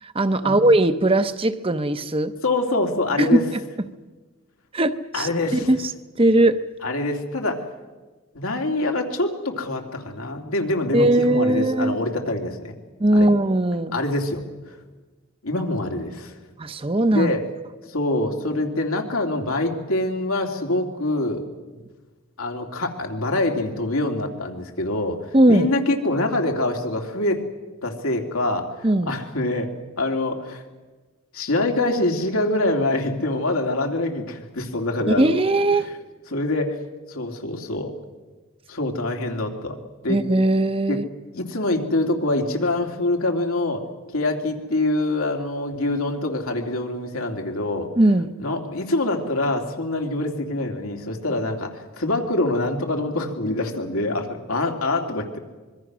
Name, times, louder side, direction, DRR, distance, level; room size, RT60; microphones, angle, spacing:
voice 1, 0.0-2.3 3.2-3.6 4.7-5.8 6.2-6.6 10.9-12.0 13.0-14.0 16.6-17.3 25.3-25.7 28.8-29.1 35.1-35.9 40.1-41.0 48.0-48.3, right 1 dB, 25° right, 10 dB, 0.7 m, -19 dB
voice 2, 2.4-3.4 5.1-5.7 6.8-7.6 8.3-12.7 13.1-13.3 13.9-14.4 15.4-16.3 17.1-17.5 17.9-21.4 22.4-27.4 27.8-30.6 31.3-35.3 35.8-35.9 36.3-36.8 37.1-37.9 38.7-39.8 40.0-40.2 40.9-41.0 41.3-43.8 44.1-47.9 48.4-55.4, left 2 dB, 90° left, 2 dB, 2.8 m, -25 dB
25.0 x 22.5 x 6.2 m, 1.3 s
head